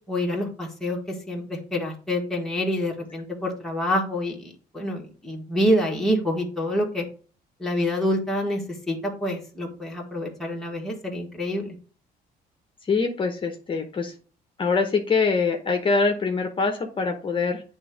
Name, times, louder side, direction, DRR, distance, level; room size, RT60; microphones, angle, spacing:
voice 1, 0.1-7.0 7.6-11.7, equal, ahead, -2 dB, 1.7 m, -27 dB
voice 2, 12.8-14.1 14.6-17.6, left 4 dB, 30° left, 4 dB, 0.9 m, -24 dB
8.6 x 3.5 x 5.1 m, 0.40 s
cardioid pair, 110°, 17 cm